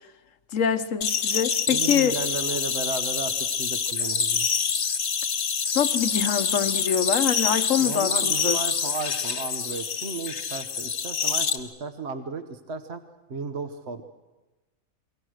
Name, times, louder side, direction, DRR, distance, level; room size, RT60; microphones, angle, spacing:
voice 1, 0.5-2.2 5.7-8.6, left 8 dB, 65° left, 11 dB, 1.3 m, -25 dB
sound 1, 1.0-11.6, left 6 dB, 85° left, 1.7 m, -26 dB
voice 2, 1.7-4.5 7.8-13.0 13.3-14.0, right 4 dB, 50° right, 8 dB, 1.3 m, -34 dB
28.5 x 23.0 x 6.4 m, 1.2 s
omnidirectional pair, 1.5 m